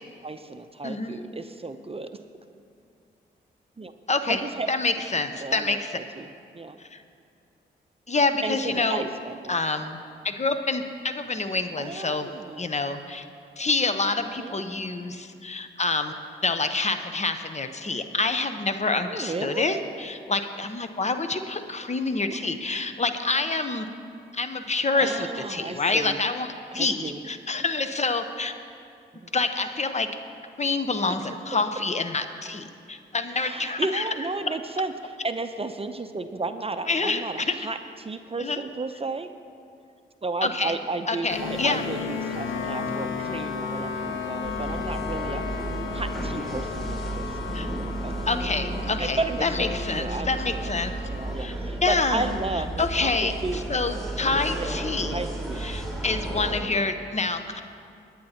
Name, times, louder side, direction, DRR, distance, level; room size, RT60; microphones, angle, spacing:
voice 1, 0.2-2.1 3.8-3.9 4.3-4.7 5.4-6.3 6.5-6.8 8.4-9.6 11.8-12.7 14.2-14.6 19.0-19.8 22.3-22.5 24.9-26.2 26.7-27.2 29.1-29.3 33.3-39.3 40.2-45.4 45.9-47.4 47.7-48.1 49.0-50.7 51.1-53.6 54.4-54.7 55.1-55.7, right 3 dB, 30° right, 9 dB, 0.7 m, -33 dB
voice 2, 0.8-1.2 4.1-4.4 4.7-6.0 6.8-7.0 8.1-9.0 9.5-10.0 10.2-12.3 12.6-13.3 13.6-16.1 16.4-23.9 24.3-28.5 29.3-30.1 30.6-34.0 36.9-37.2 38.4-38.6 40.4-40.7 41.1-41.8 47.5-47.7 48.3-51.0 51.4-51.5 51.8-52.2 52.8-53.3 53.7-55.2 55.6-57.6, left 3 dB, 35° left, 8 dB, 0.9 m, -27 dB
sound 1, 41.3-51.4, left 5 dB, 80° left, 0.9 m, -34 dB
sound 2, 44.4-56.6, right 1 dB, ahead, 2.8 m, -33 dB
20.5 x 9.4 x 2.9 m, 2.4 s
supercardioid pair, 45°, 20 cm